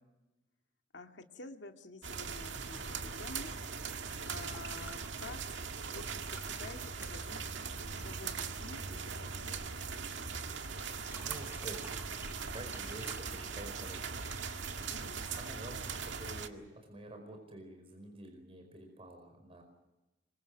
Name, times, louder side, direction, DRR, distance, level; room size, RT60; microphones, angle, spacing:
voice 1, 0.9-3.5 4.3-5.4 5.9-7.5 7.8-9.7 14.9-15.2, left 3 dB, 70° left, 4 dB, 2.1 m, -50 dB
sound 1, 2.0-16.5, right 5 dB, 85° right, 1.8 m, -40 dB
sound 2, 3.9-8.4 10.8-15.7 17.1-17.2, right 1 dB, 10° right, 2.0 m, -54 dB
voice 2, 11.2-11.9 12.5-14.1 15.3-19.6, right 1 dB, 30° right, 4 dB, 4.9 m, -48 dB
26.5 x 24.5 x 6.6 m, 1.0 s
head